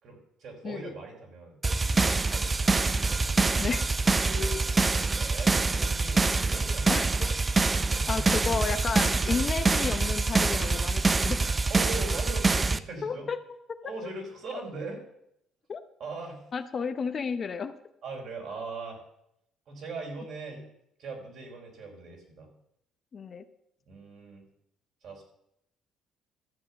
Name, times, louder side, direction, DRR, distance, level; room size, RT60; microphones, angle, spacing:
voice 1, 0.0-2.9 4.3-7.2 7.8-8.3 11.7-13.3 13.8-15.0 16.0-16.4 18.0-19.0 19.7-20.6 21.0-22.5 23.9-24.4 25.0-25.2, right 3 dB, 60° right, 1 dB, 4.3 m, -40 dB
sound 1, 1.6-12.8, right 3 dB, 20° right, 0.5 m, -25 dB
voice 2, 8.1-11.4 13.0-13.4 14.5-14.6 15.7-15.8 16.5-17.8 23.1-23.4, left 5 dB, 40° left, 10 dB, 0.9 m, -32 dB
12.5 x 7.8 x 7.1 m, 0.77 s
cardioid pair, 105°, 0 cm